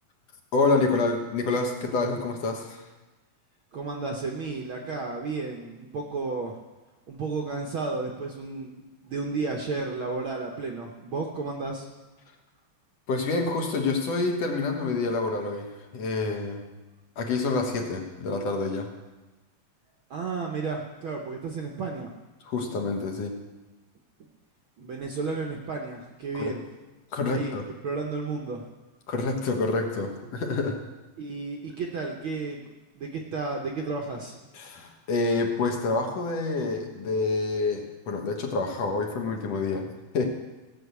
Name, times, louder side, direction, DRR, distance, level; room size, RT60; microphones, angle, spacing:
voice 1, 0.5-2.8 13.1-16.6 17.2-18.9 22.4-23.4 26.3-26.6 27.1-27.7 29.1-30.8 34.5-40.2, left 3 dB, 65° left, 2 dB, 2.3 m, -27 dB
voice 2, 3.7-6.6 7.1-11.9 20.1-22.1 24.8-26.6 27.2-27.5 27.8-28.6 31.2-32.6 32.9-34.4, right 4 dB, 65° right, 1 dB, 1.3 m, -32 dB
16.0 x 6.2 x 8.2 m, 1.1 s
omnidirectional pair, 3.4 m